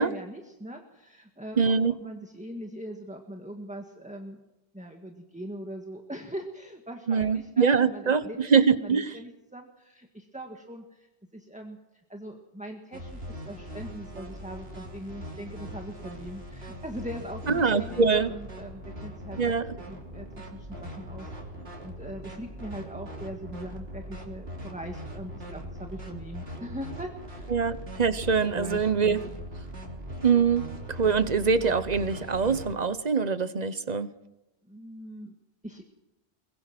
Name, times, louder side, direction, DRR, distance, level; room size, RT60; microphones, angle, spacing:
voice 1, 0.0-1.7 2.0-4.4 4.7-8.4 8.8-11.8 12.1-19.4 19.9-21.3 21.8-27.5 28.5-29.2 34.7-35.3 35.6-35.8, equal, 5° right, 3 dB, 1.7 m, -41 dB
voice 2, 1.6-2.0 7.1-9.2 17.5-18.3 19.4-19.7 27.5-29.2 30.2-34.1, right 5 dB, 45° right, 13 dB, 1.1 m, -24 dB
sound 1, 12.9-32.7, equal, 70° right, 3.5 m, -40 dB
23.0 x 21.5 x 6.0 m, 0.95 s
omnidirectional pair, 1.1 m